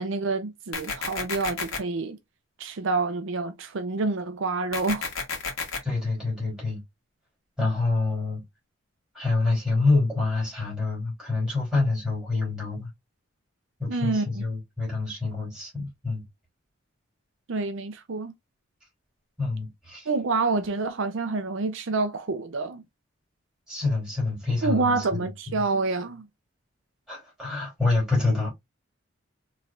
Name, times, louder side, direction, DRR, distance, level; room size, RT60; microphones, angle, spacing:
voice 1, 0.0-2.2 2.6-5.1 13.9-14.3 17.5-18.3 20.1-22.8 24.6-26.3, right 3 dB, 65° right, 0.5 m, -27 dB
sound 1, 0.7-1.8 4.7-5.8, left 4 dB, 75° left, 1.5 m, -31 dB
voice 2, 5.8-6.8 7.6-8.4 9.1-12.9 13.8-16.2 19.4-20.1 23.7-25.3 27.1-28.5, left 3 dB, 5° right, 3.0 m, -26 dB
4.7 x 3.2 x 2.4 m
head